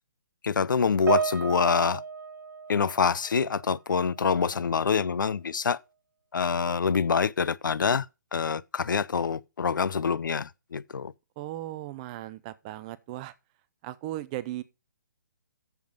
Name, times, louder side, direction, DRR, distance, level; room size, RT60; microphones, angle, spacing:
voice 1, 0.4-2.0 2.7-5.8 6.3-8.1 8.3-11.1, left 6 dB, 85° left, 0.5 m, -26 dB
Piano, 1.1-3.7 4.0-4.3 5.1-5.2, right 5 dB, 90° right, 0.7 m, -32 dB
voice 2, 11.4-13.3 13.8-14.6, right 15 dB, 20° right, 0.5 m, -37 dB
8.1 x 7.4 x 5.2 m
hypercardioid pair, 160°, 10 cm